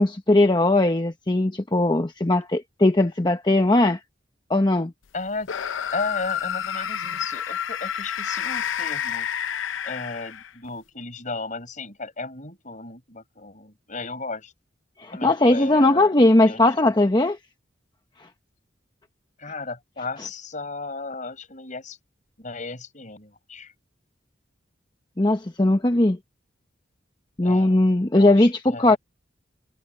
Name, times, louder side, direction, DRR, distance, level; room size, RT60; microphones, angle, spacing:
voice 1, 0.0-4.0 4.5-4.9 15.0-17.4 25.2-26.2 27.4-29.0, left 2 dB, 25° left, 1.0 m, -19 dB
voice 2, 5.1-5.5 5.9-9.3 9.8-14.5 15.1-16.1 16.4-17.0 19.4-22.0 22.4-23.7 27.4-27.8 28.1-29.0, left 3 dB, 40° left, 4.9 m, -35 dB
sound 1, 5.4-10.7, left 9 dB, 90° left, 0.6 m, -29 dB
head